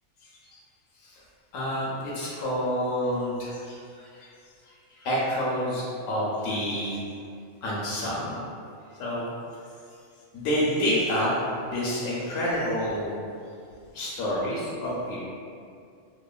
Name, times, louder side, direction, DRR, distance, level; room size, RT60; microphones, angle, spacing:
voice 1, 1.5-4.3 4.9-7.0 7.6-8.4 9.0-9.3 10.3-13.2 13.9-15.2, equal, 90° left, -6 dB, 1.0 m, -28 dB
2.9 x 2.1 x 2.3 m, 2.4 s
omnidirectional pair, 1.3 m